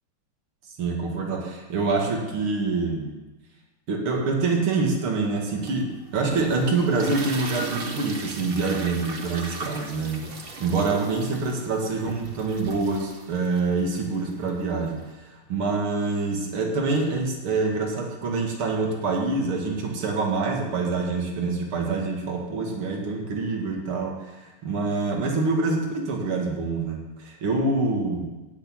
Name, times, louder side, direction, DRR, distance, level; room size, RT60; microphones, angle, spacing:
voice 1, 0.8-3.1 3.9-15.0 15.2-28.3, right 3 dB, 80° right, 0 dB, 2.9 m, -26 dB
sound 1, 5.7-15.1, right 3 dB, 35° right, 1.1 m, -37 dB
15.0 x 6.4 x 9.2 m, 1.1 s
omnidirectional pair, 2.3 m